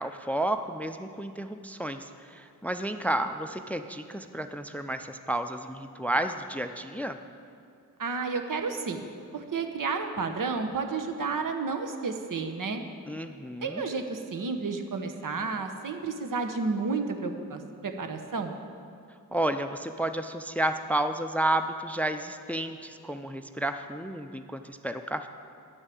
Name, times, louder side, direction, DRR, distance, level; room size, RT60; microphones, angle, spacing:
voice 1, 0.0-7.2 13.1-13.8 19.3-25.3, right 1 dB, 5° left, 8 dB, 0.4 m, -31 dB
voice 2, 8.0-9.1 9.3-12.8 13.6-18.6, right 4 dB, 65° right, 6 dB, 1.0 m, -31 dB
9.2 x 6.3 x 7.7 m, 2.5 s
cardioid pair, 50°, 34 cm